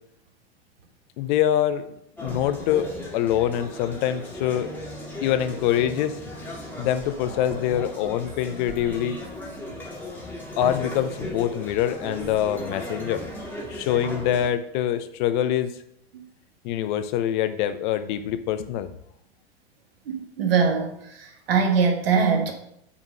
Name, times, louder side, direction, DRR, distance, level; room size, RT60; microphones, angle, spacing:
voice 1, 1.2-1.8 2.2-2.9 3.1-4.7 5.2-6.2 6.8-9.2 10.6-13.2 13.7-15.7 16.6-18.9, left 10 dB, 50° left, 11 dB, 0.6 m, -24 dB
sound 1, 2.2-14.5, left 1 dB, 5° left, 1.6 m, -36 dB
voice 2, 20.4-20.9 21.5-22.5, right 5 dB, 70° right, 4 dB, 1.4 m, -20 dB
6.1 x 3.8 x 5.5 m, 0.75 s
figure-of-eight pair, 90°, 31 cm